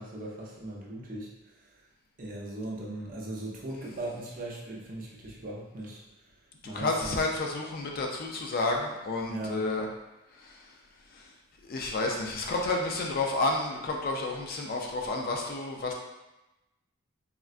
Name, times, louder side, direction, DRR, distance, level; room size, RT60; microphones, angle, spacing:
voice 1, 0.0-1.8 2.2-6.0 6.6-7.1 9.3-9.6, right 1 dB, 40° right, -4 dB, 0.5 m, -39 dB
voice 2, 6.6-9.9 10.3-10.8 11.1-11.3 11.6-15.9, left 2 dB, 45° left, 1 dB, 0.3 m, -31 dB
3.6 x 2.2 x 2.4 m, 1.0 s
head